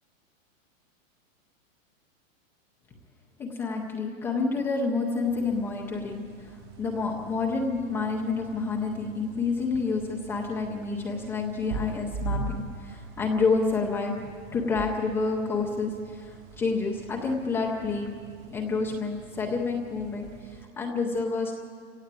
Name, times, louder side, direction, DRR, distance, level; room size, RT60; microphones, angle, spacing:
voice 1, 3.4-18.1 18.5-21.5, left 4 dB, 5° left, 0 dB, 0.5 m, -29 dB
sound 1, 5.2-20.7, right 3 dB, 20° right, 0.9 m, -42 dB
28.0 x 17.0 x 8.9 m, 2.4 s
supercardioid pair, 170°, 39 cm